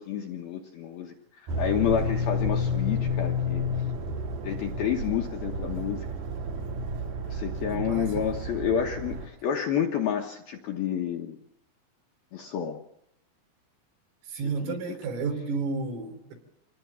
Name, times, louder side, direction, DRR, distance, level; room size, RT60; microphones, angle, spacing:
voice 1, 0.0-3.6 4.4-6.0 7.3-11.4 12.3-12.8 14.6-14.8, left 9 dB, 75° left, 2 dB, 2.2 m, -29 dB
sound 1, 1.5-9.3, left 2 dB, 55° right, 3.7 m, -31 dB
voice 2, 7.7-8.3 14.3-16.3, right 4 dB, 70° right, 3 dB, 5.8 m, -32 dB
26.0 x 19.0 x 7.0 m, 0.80 s
omnidirectional pair, 6.0 m